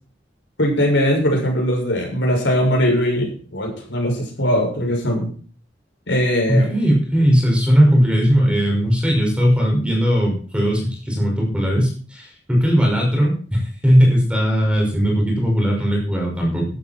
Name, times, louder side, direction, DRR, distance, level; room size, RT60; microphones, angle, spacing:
voice 1, 0.6-5.3 6.1-6.7, equal, 70° left, 0 dB, 6.4 m, -20 dB
voice 2, 6.5-16.7, equal, 5° right, -1 dB, 5.8 m, -18 dB
14.0 x 12.5 x 4.5 m, 0.42 s
head